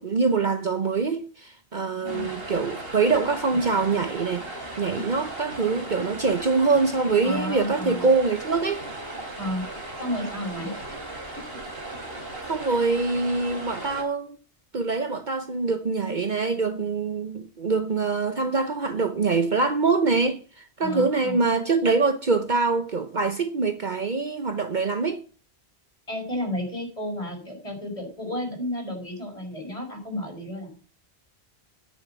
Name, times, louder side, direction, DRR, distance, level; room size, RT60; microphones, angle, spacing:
voice 1, 0.0-4.4 4.8-8.9 12.5-14.4 14.7-25.2, right 4 dB, 50° right, 1.0 m, -24 dB
sound 1, 2.1-14.0, right 2 dB, 65° right, 3.8 m, -37 dB
voice 2, 7.2-8.1 9.4-9.6 10.0-10.7 20.8-21.4 26.1-30.8, left 1 dB, 35° left, 5.3 m, -32 dB
10.5 x 8.4 x 7.4 m
omnidirectional pair, 1.1 m